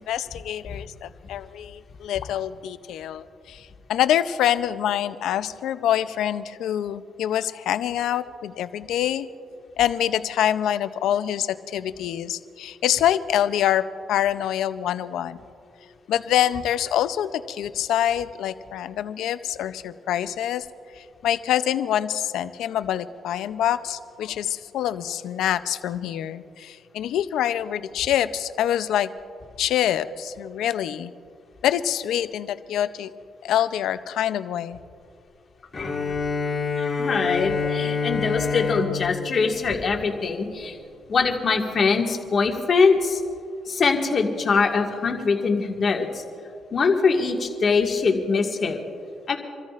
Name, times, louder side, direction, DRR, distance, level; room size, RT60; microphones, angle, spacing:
voice 1, 0.0-9.3 9.8-13.8 14.1-15.4 16.1-20.7 20.9-29.1 29.6-31.1 31.6-33.1 33.4-34.8, left 11 dB, 80° left, 12 dB, 0.5 m, -25 dB
Bowed string instrument, 35.7-40.7, left 5 dB, 30° left, 2.9 m, -28 dB
voice 2, 36.8-40.8 41.1-43.2 43.7-46.2 46.7-48.8 49.3-49.4, left 4 dB, 45° left, 1 dB, 1.8 m, -22 dB
28.0 x 13.5 x 2.5 m, 2.4 s
cardioid pair, 90°, 0 cm